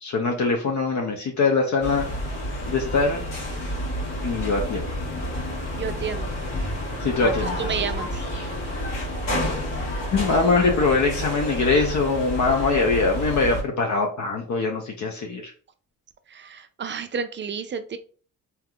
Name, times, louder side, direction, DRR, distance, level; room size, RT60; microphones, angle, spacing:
voice 1, 0.0-2.1 2.7-3.2 4.2-4.8 7.0-7.6 10.1-15.5, left 4 dB, 60° left, 1 dB, 0.7 m, -22 dB
sound 1, 1.8-13.6, left 1 dB, 80° left, 1.5 m, -29 dB
voice 2, 5.7-6.3 7.2-8.2 16.3-18.0, right 6 dB, 35° right, 10 dB, 0.4 m, -31 dB
3.4 x 2.9 x 2.3 m, 0.40 s
cardioid pair, 70°, 33 cm